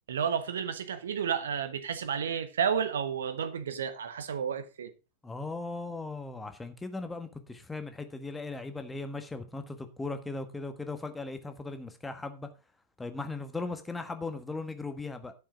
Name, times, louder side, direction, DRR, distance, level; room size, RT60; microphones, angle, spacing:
voice 1, 0.1-4.9, right 7 dB, 65° right, 1.3 m, -31 dB
voice 2, 5.2-12.5 13.0-15.3, left 3 dB, 10° left, 1.4 m, -38 dB
10.5 x 7.2 x 5.0 m
figure-of-eight pair, 90°, 0 cm